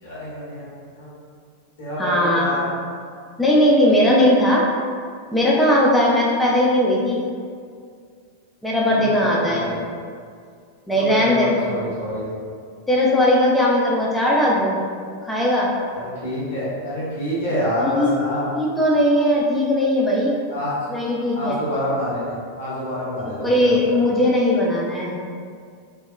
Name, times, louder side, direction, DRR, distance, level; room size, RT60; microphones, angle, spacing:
voice 1, 0.0-1.1 1.8-2.6 8.9-9.8 11.0-12.3 15.9-18.5 20.5-20.7 21.3-24.0, equal, 60° left, -8 dB, 0.9 m, -27 dB
voice 2, 2.0-2.6 3.4-4.6 5.3-7.2 8.6-9.7 10.9-11.7 12.9-14.8 15.2-15.7 17.8-18.1 18.5-20.4 20.9-21.6 23.4-25.1, left 1 dB, 5° left, -5 dB, 0.5 m, -18 dB
2.7 x 2.3 x 2.2 m, 2.2 s
figure-of-eight pair, 90°, 0 cm